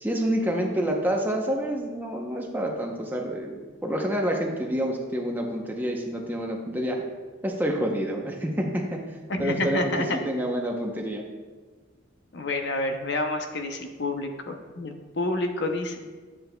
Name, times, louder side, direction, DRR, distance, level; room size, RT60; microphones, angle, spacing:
voice 1, 0.0-7.0 7.4-9.0 9.4-11.2, equal, 10° right, 1 dB, 0.7 m, -28 dB
voice 2, 9.3-10.2 12.3-16.0, left 2 dB, 60° left, 5 dB, 0.7 m, -29 dB
10.0 x 7.5 x 2.3 m, 1.4 s
head